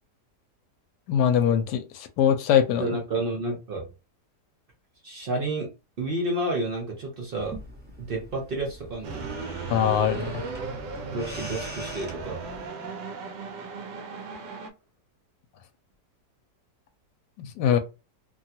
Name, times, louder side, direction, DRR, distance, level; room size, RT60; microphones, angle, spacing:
voice 1, 1.1-2.9 9.7-10.5 17.4-17.8, left 9 dB, 80° left, 1.2 m, -22 dB
voice 2, 2.8-3.9 5.0-5.7 6.0-7.6 8.0-9.3 11.1-12.4, right 2 dB, 60° right, 0.6 m, -30 dB
sound 1, 7.4-12.7, equal, 10° right, 0.7 m, -43 dB
sound 2, 9.0-14.7, right 4 dB, 85° right, 1.2 m, -36 dB
3.0 x 2.3 x 2.7 m
omnidirectional pair, 1.8 m